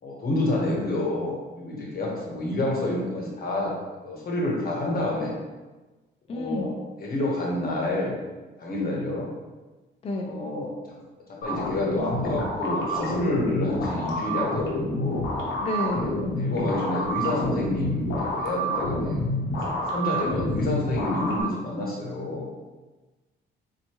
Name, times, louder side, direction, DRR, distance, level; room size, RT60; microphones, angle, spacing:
voice 1, 0.0-3.7 4.0-5.3 6.3-6.7 7.0-8.2 8.6-9.3 10.3-11.0 11.3-15.5 16.4-19.2 19.7-22.5, left 1 dB, 50° left, -3 dB, 1.3 m, -29 dB
voice 2, 6.3-6.8 10.0-10.3 15.6-16.1, left 1 dB, 30° left, 1 dB, 0.4 m, -29 dB
sound 1, 11.4-21.4, equal, 70° left, 1.0 m, -28 dB
4.3 x 2.8 x 3.0 m, 1.2 s
cardioid pair, 90°, 20 cm